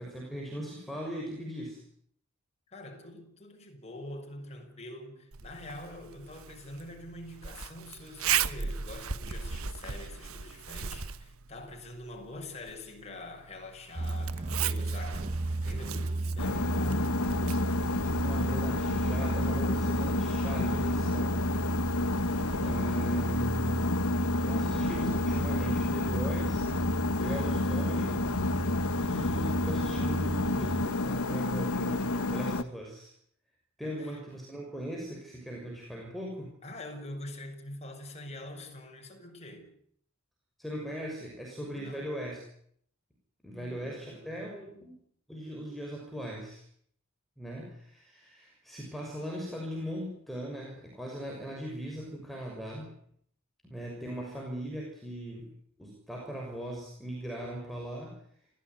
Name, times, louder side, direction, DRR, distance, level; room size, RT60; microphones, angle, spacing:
voice 1, 0.0-1.8 18.1-21.4 22.6-23.8 24.3-26.7 27.2-28.2 28.9-33.1 33.8-36.5 40.6-42.4 43.4-44.9 45.3-46.6 47.4-52.9 53.6-55.5 55.8-58.2, equal, ahead, 6.3 m, -39 dB
voice 2, 2.7-17.1 33.8-34.2 36.6-39.7 41.7-42.1 43.5-45.0, left 1 dB, 30° left, 6.3 m, -45 dB
Zipper (clothing), 5.3-18.9, right 8 dB, 75° right, 1.2 m, -38 dB
sound 1, 14.0-30.9, right 2 dB, 30° right, 1.1 m, -33 dB
sound 2, 16.4-32.6, left 2 dB, 85° left, 1.1 m, -30 dB
30.0 x 15.5 x 9.5 m
head